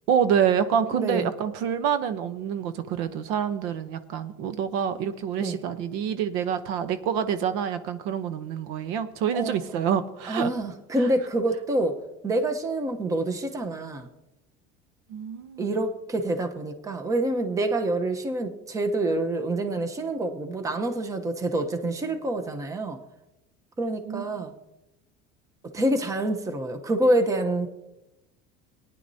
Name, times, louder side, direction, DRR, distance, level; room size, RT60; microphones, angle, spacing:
voice 1, 0.1-10.5 11.0-11.1 15.1-15.8 24.1-24.4, right 8 dB, 70° right, 11 dB, 0.8 m, -27 dB
voice 2, 0.9-1.3 5.4-5.6 9.3-9.7 10.3-12.0 12.2-14.1 15.6-23.0 23.8-24.5 25.7-27.7, right 1 dB, 15° right, 6 dB, 0.9 m, -27 dB
18.5 x 10.0 x 2.7 m, 0.92 s
cardioid pair, 140°, 21 cm